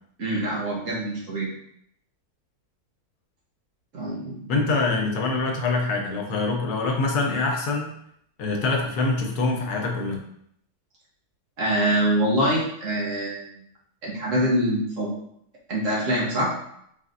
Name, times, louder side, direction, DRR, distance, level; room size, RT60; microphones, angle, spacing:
voice 1, 0.2-1.5 3.9-4.7 11.6-13.6 14.0-15.1 15.7-16.5, right 1 dB, 55° right, -4 dB, 1.4 m, -25 dB
voice 2, 4.5-7.9 8.4-10.2, left 3 dB, 90° left, 2 dB, 1.3 m, -25 dB
4.1 x 3.9 x 2.5 m, 0.71 s
omnidirectional pair, 1.6 m